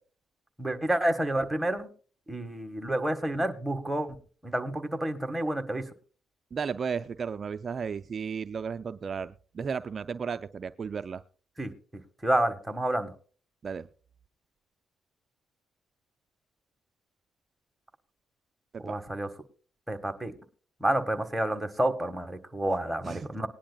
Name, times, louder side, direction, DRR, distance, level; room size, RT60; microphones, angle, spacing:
voice 1, 0.6-1.9 2.3-4.1 4.4-5.8 11.6-11.7 12.2-13.1 18.8-19.3 19.9-20.3 20.8-23.5, right 1 dB, 5° right, 5 dB, 1.6 m, -29 dB
voice 2, 6.5-11.2 13.6-13.9 18.9-19.0 23.0-23.3, right 6 dB, 45° right, 10 dB, 0.4 m, -34 dB
20.0 x 10.0 x 2.3 m, 0.40 s
cardioid pair, 90°, 0 cm